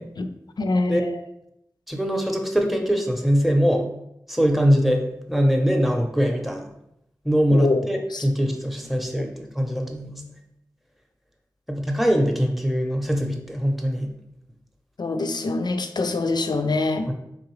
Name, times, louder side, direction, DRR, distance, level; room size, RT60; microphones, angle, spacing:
voice 1, 0.6-1.1 7.5-7.8 8.1-8.2 9.2-9.3 15.0-17.1, left 3 dB, 70° left, 8 dB, 0.4 m, -24 dB
voice 2, 1.9-3.8 4.3-6.7 7.2-10.2 11.7-14.1 17.1-17.2, equal, ahead, 3 dB, 0.7 m, -22 dB
3.8 x 3.1 x 3.1 m, 0.80 s
wide cardioid pair, 50°, 7 cm